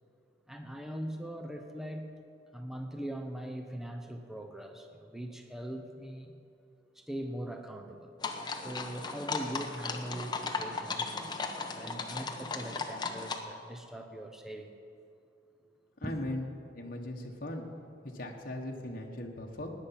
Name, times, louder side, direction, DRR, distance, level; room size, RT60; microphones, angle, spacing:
voice 1, 0.5-2.1 2.5-6.3 6.9-8.2 8.6-11.1 11.7-14.7 16.0-16.3, right 1 dB, ahead, 4 dB, 0.8 m, -41 dB
sound 1, 8.2-13.4, left 4 dB, 25° left, 0.9 m, -36 dB
voice 2, 16.0-16.4 16.7-17.7 18.0-19.7, left 1 dB, 55° left, 0 dB, 1.3 m, -38 dB
17.0 x 10.0 x 5.8 m, 2.5 s
head